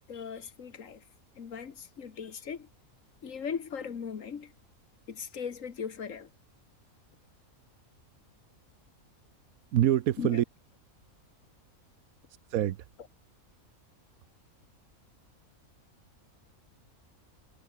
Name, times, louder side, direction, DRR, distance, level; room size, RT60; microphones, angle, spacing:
voice 1, 0.1-1.0 1.4-2.7 3.2-4.5 5.1-6.3 10.2-10.4, left 6 dB, 65° left, 1.8 m, -38 dB
voice 2, 9.7-10.4 12.5-12.8, right 12 dB, 80° right, 1.2 m, -25 dB
omnidirectional pair, 1.5 m